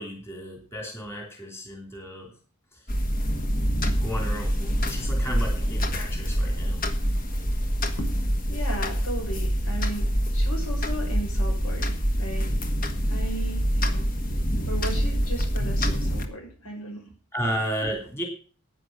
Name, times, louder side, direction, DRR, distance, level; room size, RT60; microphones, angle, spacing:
voice 1, 0.0-2.3 4.0-6.8 17.3-18.2, equal, 10° left, 1 dB, 3.1 m, -33 dB
sound 1, 2.9-16.3, equal, 40° left, 1.5 m, -26 dB
voice 2, 8.5-12.5 13.1-14.1 14.7-17.1, right 1 dB, 75° left, 1 dB, 5.9 m, -36 dB
11.0 x 9.6 x 6.1 m, 0.39 s
head